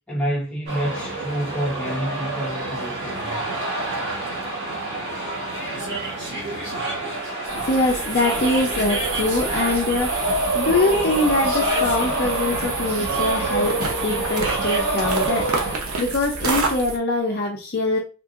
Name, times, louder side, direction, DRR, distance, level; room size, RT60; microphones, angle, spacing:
voice 1, 0.1-3.4, equal, 5° left, 1.0 m, -28 dB
sound 1, 0.7-15.8, right 2 dB, 50° right, 1.5 m, -26 dB
sound 2, 7.4-17.0, right 3 dB, 80° right, 0.8 m, -30 dB
voice 2, 7.7-15.5 16.0-18.0, left 2 dB, 45° left, 0.5 m, -23 dB
3.6 x 2.5 x 2.4 m
head